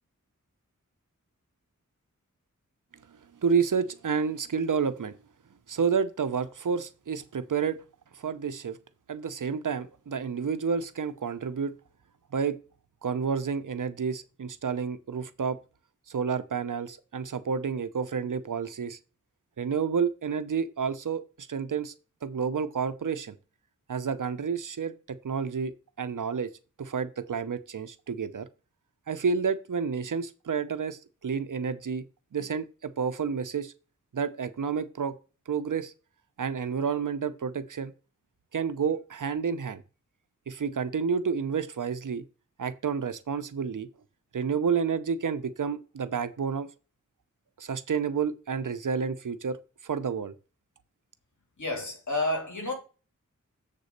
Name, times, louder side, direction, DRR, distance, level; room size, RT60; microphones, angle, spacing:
voice 1, 3.4-5.2 5.7-7.8 8.2-8.8 9.1-11.7 12.3-12.6 13.0-15.6 16.1-19.0 19.6-21.9 22.2-23.3 23.9-26.5 26.8-28.5 29.1-32.0 32.3-33.7 34.1-35.1 35.5-35.9 36.4-37.9 38.5-39.8 40.5-42.2 42.6-43.9 44.3-46.7 47.6-49.6 49.8-50.3, right 6 dB, 75° right, 0.7 m, -30 dB
voice 2, 51.6-52.7, left 2 dB, 65° left, 2.9 m, -30 dB
7.4 x 4.0 x 6.6 m
wide cardioid pair, 45°, 32 cm